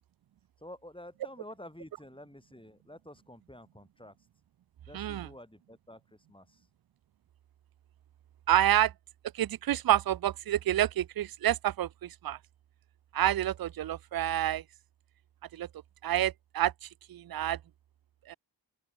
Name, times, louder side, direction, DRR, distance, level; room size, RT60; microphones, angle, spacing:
voice 1, 0.6-4.2 4.8-6.7, left 1 dB, 10° left, 7.8 m, -50 dB
voice 2, 4.9-5.3 8.5-8.9 9.3-12.4 13.1-14.6 15.5-15.7 16.0-17.6 18.3-18.4, right 12 dB, 55° right, 0.5 m, -28 dB
open air
cardioid pair, 40°, 43 cm